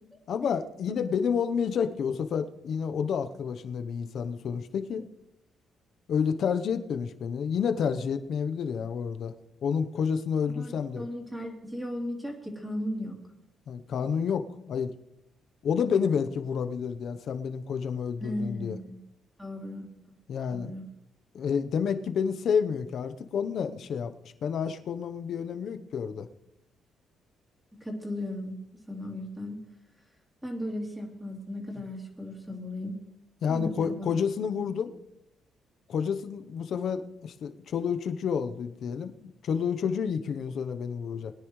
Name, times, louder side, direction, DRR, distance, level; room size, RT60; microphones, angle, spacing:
voice 1, 0.3-5.0 6.1-9.3 9.6-11.0 13.7-14.9 15.6-18.8 20.3-20.7 21.3-24.1 24.4-26.3 33.4-34.9 35.9-41.3, left 7 dB, 65° left, 9 dB, 0.9 m, -29 dB
voice 2, 10.5-13.2 18.2-19.0 19.4-19.9 20.5-20.9 27.8-28.6 28.9-29.6 30.4-33.0 33.5-34.1, left 1 dB, 5° right, -1 dB, 3.3 m, -36 dB
21.5 x 10.0 x 3.2 m, 0.84 s
cardioid pair, 90°, 0 cm